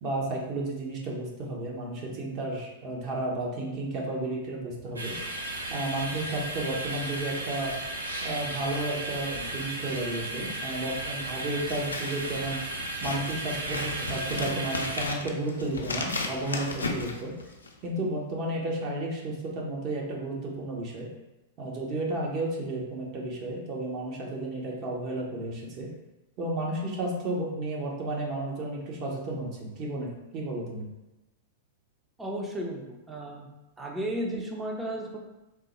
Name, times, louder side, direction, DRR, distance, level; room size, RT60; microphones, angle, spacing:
voice 1, 0.0-5.2 5.7-7.8 8.2-12.6 13.0-17.3 17.8-21.1 21.6-25.9 26.4-30.9, right 2 dB, 40° right, -2 dB, 0.9 m, -32 dB
sound 1, 5.0-15.1, right 1 dB, 90° right, 0.6 m, -35 dB
Scissors, 11.6-17.8, left 3 dB, 90° left, 0.4 m, -35 dB
voice 2, 32.2-33.5 33.8-35.2, right 1 dB, 10° right, -1 dB, 0.5 m, -34 dB
3.5 x 2.1 x 3.0 m, 0.98 s
hypercardioid pair, 105°, 0 cm